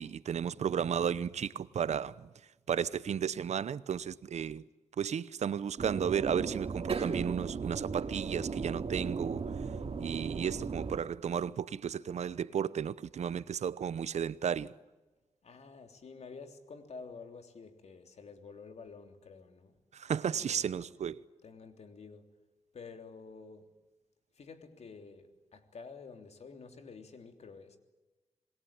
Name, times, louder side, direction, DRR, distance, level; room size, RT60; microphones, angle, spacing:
voice 1, 0.0-2.3 2.7-4.6 5.0-9.5 10.0-14.7 19.9-21.2, right 8 dB, 80° right, 0.9 m, -33 dB
sound 1, 5.8-11.0, right 5 dB, 60° right, 2.6 m, -36 dB
voice 2, 15.4-19.8 20.3-20.6 21.4-22.3 22.7-23.8 24.3-27.8, left 4 dB, 70° left, 3.2 m, -50 dB
27.0 x 21.5 x 8.8 m
cardioid pair, 70°, 11 cm